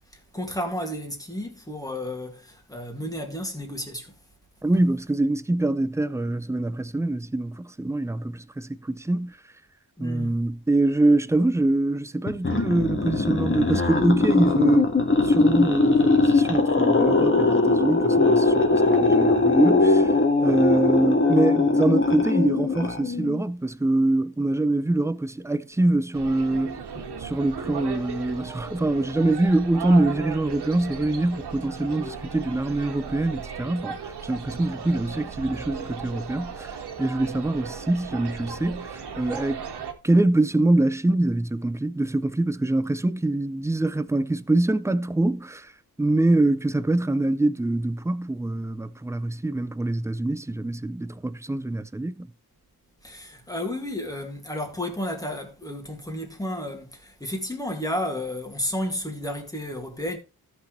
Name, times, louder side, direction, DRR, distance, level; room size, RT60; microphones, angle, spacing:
voice 1, 0.1-4.1 10.0-10.4 26.9-27.2 53.0-60.2, left 1 dB, 10° left, 2.1 m, -32 dB
voice 2, 4.6-9.4 10.0-14.9 15.2-20.1 20.4-26.8 27.2-39.7 40.0-45.7 46.0-52.3, right 2 dB, 10° right, 0.4 m, -24 dB
sound 1, 12.3-23.4, left 3 dB, 30° left, 1.7 m, -20 dB
sound 2, 26.1-39.9, right 6 dB, 80° right, 1.7 m, -36 dB
16.0 x 6.2 x 3.2 m
wide cardioid pair, 160°, 39 cm